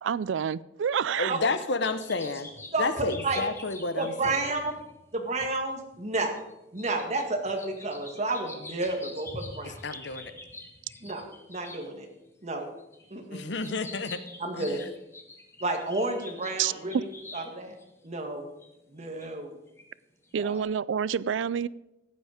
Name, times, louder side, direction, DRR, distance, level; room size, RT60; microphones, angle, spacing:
voice 1, 0.0-1.4 16.6-16.7 20.3-21.7, right 8 dB, 90° right, 0.4 m, -28 dB
voice 2, 1.2-2.5 2.8-4.6 9.6-10.3 13.3-14.2 14.5-14.8, left 3 dB, 65° left, 0.8 m, -31 dB
sound 1, 1.8-11.9 12.5-18.1 18.6-18.7 19.2-19.3 19.8-19.9 20.2-20.6, left 2 dB, 15° left, 1.4 m, -45 dB
voice 3, 2.7-3.4 4.0-4.7 5.1-6.4 6.7-9.8 11.0-11.2 11.5-12.1 12.4-12.7 13.1-13.5 14.4-14.8 15.6-17.1 17.3-17.7 18.0-18.5 18.9-19.6 20.4-20.6, right 2 dB, 35° right, 1.8 m, -31 dB
14.5 x 9.4 x 5.1 m
head